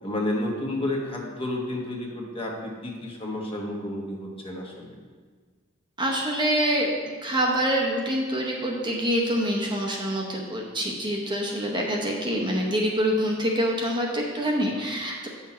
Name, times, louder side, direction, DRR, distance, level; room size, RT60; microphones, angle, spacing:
voice 1, 0.0-5.0, left 1 dB, 25° left, -1 dB, 1.1 m, -31 dB
voice 2, 6.0-6.9 7.2-15.3, equal, 20° right, -1 dB, 0.8 m, -26 dB
8.7 x 5.8 x 4.3 m, 1.5 s
head